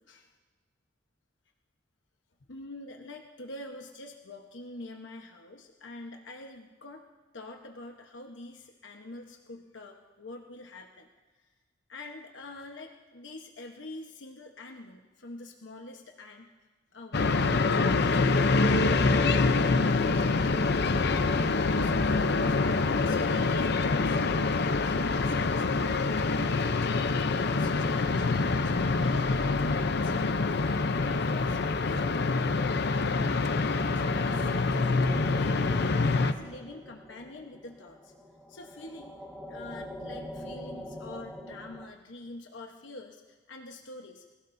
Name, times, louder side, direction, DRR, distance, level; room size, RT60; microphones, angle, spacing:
voice 1, 2.5-7.0 7.3-11.1 11.9-16.5 16.9-19.0 19.3-20.4 20.7-22.5 23.0-24.2 24.6-25.9 26.3-27.1 27.3-30.7 31.2-34.9 35.3-38.1 38.5-39.2 39.5-44.2, left 2 dB, 80° left, 2 dB, 1.1 m, -45 dB
sound 1, 17.1-36.3, left 3 dB, 60° left, 0.7 m, -26 dB
sound 2, 33.2-41.8, equal, ahead, 1.5 m, -44 dB
26.5 x 16.5 x 2.7 m, 1.3 s
head